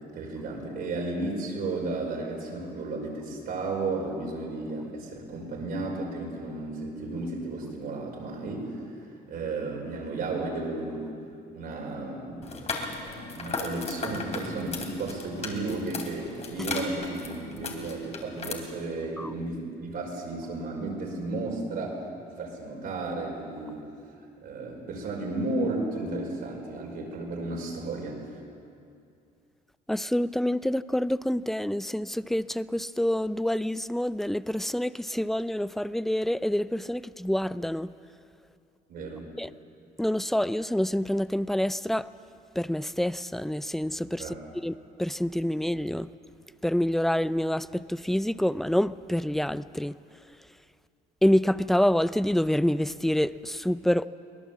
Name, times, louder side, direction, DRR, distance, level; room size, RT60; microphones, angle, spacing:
voice 1, 0.1-8.9 9.3-11.1 11.5-12.6 13.1-23.8 24.4-28.2 38.9-39.3 44.2-44.4, right 2 dB, 65° right, 5.4 m, -33 dB
sound 1, 12.4-18.5, left 3 dB, 40° left, 3.3 m, -36 dB
voice 2, 29.9-37.9 39.4-39.5 40.0-42.1 42.6-44.4 44.6-46.1 46.6-50.0 51.2-54.1, left 1 dB, ahead, 0.4 m, -27 dB
23.0 x 18.0 x 7.5 m
cardioid pair, 110°, 17 cm